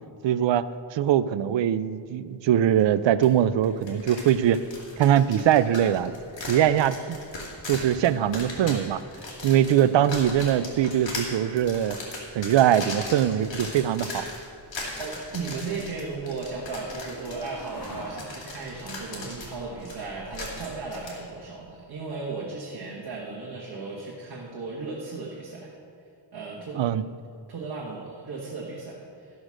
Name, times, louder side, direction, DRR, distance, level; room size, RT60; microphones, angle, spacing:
voice 1, 0.2-0.6 0.9-4.6 5.0-6.1 6.5-7.2 7.7-9.0 9.4-12.0 12.3-14.3 26.7-27.0, right 10 dB, 70° right, 15 dB, 0.5 m, -22 dB
sound 1, 3.2-3.3 3.6-21.1, left 2 dB, 70° left, 2.5 m, -38 dB
sound 2, 14.4-21.8, left 1 dB, 50° left, 2.4 m, -47 dB
voice 2, 15.0-25.7 26.3-26.9 27.5-29.4, right 4 dB, 55° right, -4 dB, 1.5 m, -36 dB
13.5 x 6.4 x 6.2 m, 2.4 s
wide cardioid pair, 135°, 46 cm